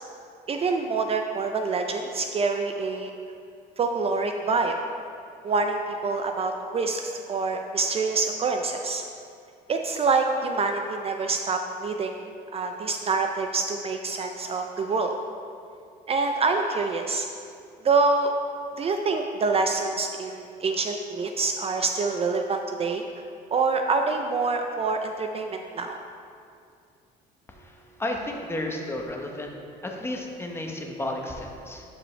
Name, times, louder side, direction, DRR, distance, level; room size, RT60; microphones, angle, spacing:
voice 1, 0.5-3.1 3.8-4.8 5.4-9.0 9.7-15.2 16.1-17.3 17.8-18.3 18.8-23.1 23.5-26.0, right 4 dB, 35° right, 5 dB, 0.4 m, -26 dB
voice 2, 27.6-29.5 29.8-31.8, left 1 dB, 15° left, 1 dB, 0.9 m, -32 dB
11.5 x 5.2 x 3.3 m, 2.4 s
cardioid pair, 110°, 17 cm